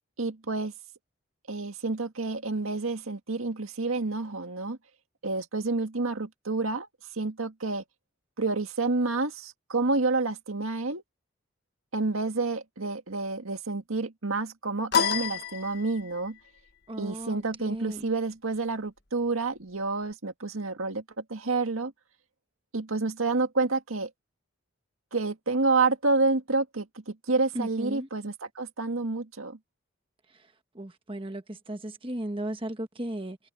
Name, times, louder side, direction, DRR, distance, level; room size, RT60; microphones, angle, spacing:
voice 1, 0.2-0.7 1.5-4.8 5.2-6.9 7.2-7.8 8.4-11.0 11.9-16.4 17.0-21.0 21.3-21.9 22.7-24.1 25.1-29.6, right 3 dB, 90° right, 1.9 m, -29 dB
sound 1, 14.9-16.3, left 7 dB, 50° left, 1.5 m, -28 dB
voice 2, 16.9-18.1 27.5-28.1 30.7-33.4, right 1 dB, 25° right, 1.3 m, -36 dB
head